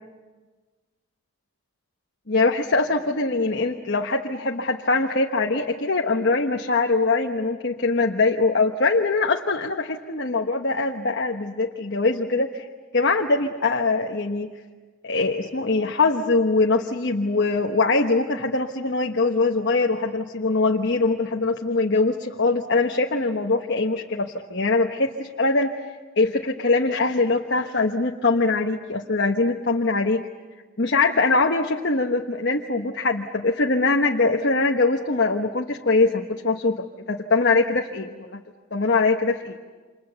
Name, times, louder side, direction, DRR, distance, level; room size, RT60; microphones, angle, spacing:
voice 1, 2.3-12.7 12.9-14.5 15.0-25.7 26.2-30.3 30.8-38.4 38.7-39.6, left 3 dB, 50° left, 2 dB, 1.2 m, -22 dB
30.0 x 26.5 x 7.0 m, 1.4 s
head